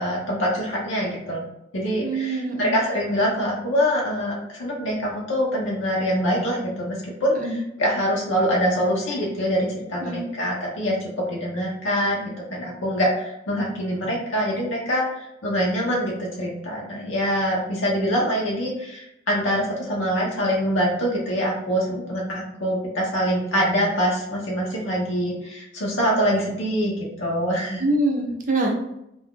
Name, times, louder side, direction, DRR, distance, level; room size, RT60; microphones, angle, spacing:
voice 1, 0.0-1.4 1.7-27.8, equal, 75° left, -3 dB, 0.8 m, -24 dB
voice 2, 2.0-2.7 7.3-7.6 10.0-10.3 27.8-28.7, right 2 dB, 45° right, 1 dB, 0.6 m, -24 dB
2.5 x 2.3 x 3.6 m, 0.84 s
head